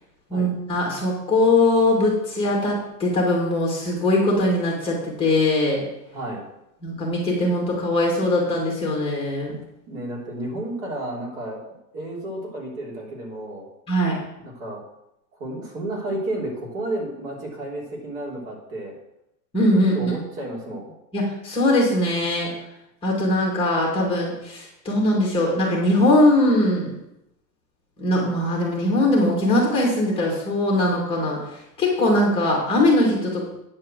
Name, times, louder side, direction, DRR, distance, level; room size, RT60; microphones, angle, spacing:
voice 1, 0.3-5.8 6.8-9.6 13.9-14.2 19.5-20.1 21.1-22.5 23.0-26.9 28.0-33.4, left 1 dB, 10° left, -2 dB, 2.1 m, -21 dB
voice 2, 6.1-6.5 9.9-11.6 11.9-13.7 14.4-14.8 15.4-18.9 19.9-20.9, right 1 dB, 55° right, -2 dB, 3.6 m, -31 dB
9.6 x 4.7 x 7.6 m, 0.84 s
supercardioid pair, 170°, 50 cm